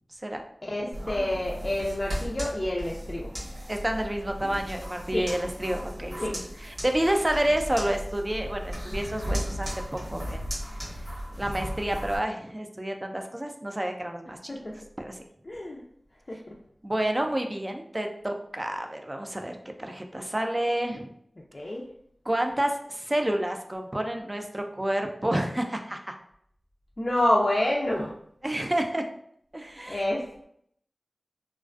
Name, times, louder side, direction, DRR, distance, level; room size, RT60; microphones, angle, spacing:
voice 1, 0.6-3.3 5.1-5.3 6.2-6.4 14.5-14.7 15.5-15.8 16.3-16.5 21.5-21.9 27.0-28.1 29.9-30.4, left 1 dB, 50° left, -3 dB, 0.4 m, -28 dB
sound 1, 0.9-12.2, equal, 90° right, 1.1 m, -36 dB
voice 2, 3.7-10.5 11.4-14.5 15.0-15.2 16.8-21.1 22.3-26.1 28.4-29.0 29.5-30.0, right 1 dB, 30° right, 4 dB, 0.3 m, -29 dB
2.4 x 2.2 x 2.4 m, 0.68 s
wide cardioid pair, 50°, 0 cm